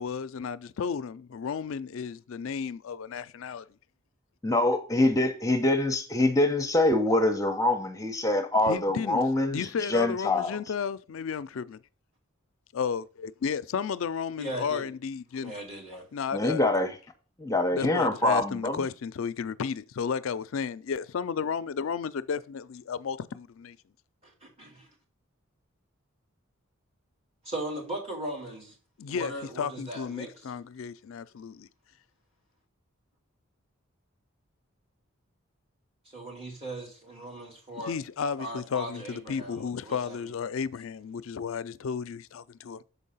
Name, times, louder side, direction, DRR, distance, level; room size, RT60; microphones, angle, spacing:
voice 1, 0.0-3.7 8.7-9.2 9.5-11.8 12.7-15.5 16.1-16.6 17.7-23.8 29.0-31.7 37.9-42.8, left 6 dB, 75° left, 0.4 m, -33 dB
voice 2, 4.4-10.6 16.3-16.9 17.4-18.8, left 2 dB, 15° left, 0.7 m, -25 dB
voice 3, 14.4-14.9 15.4-16.0 24.2-24.9 27.4-28.7 29.1-30.3 36.0-38.0 38.4-40.3, right 1 dB, 30° right, 2.9 m, -38 dB
7.0 x 4.6 x 5.5 m
head